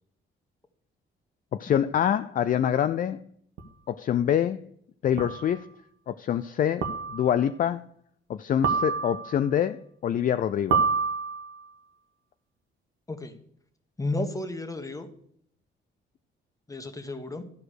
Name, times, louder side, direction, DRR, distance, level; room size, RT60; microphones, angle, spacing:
voice 1, 1.5-3.2 3.9-4.6 5.0-5.7 6.1-7.8 8.3-10.8, left 9 dB, 45° left, 0.4 m, -25 dB
sound 1, 3.6-3.7 5.2-5.5 6.8-7.4 8.6-9.4 10.7-11.6, right 5 dB, 75° right, 1.1 m, -27 dB
voice 2, 13.1-13.4 14.0-15.1 16.7-17.4, left 2 dB, 15° left, 1.2 m, -32 dB
12.0 x 4.9 x 6.3 m
cardioid pair, 90°, 20 cm